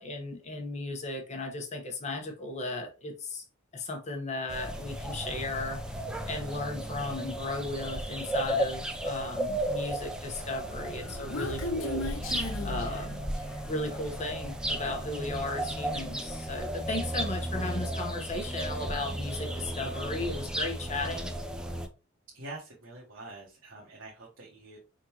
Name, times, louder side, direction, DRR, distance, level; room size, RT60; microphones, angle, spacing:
voice 1, 0.0-3.4 3.7-12.4 12.6-13.2 13.6-21.3, left 2 dB, 35° left, 1.0 m, -36 dB
sound 1, 4.5-21.9, right 1 dB, 5° right, 0.5 m, -35 dB
Human voice, 10.7-13.7, left 2 dB, 85° left, 0.8 m, -36 dB
voice 2, 22.3-24.8, right 2 dB, 75° right, 1.0 m, -45 dB
4.5 x 3.7 x 2.9 m
head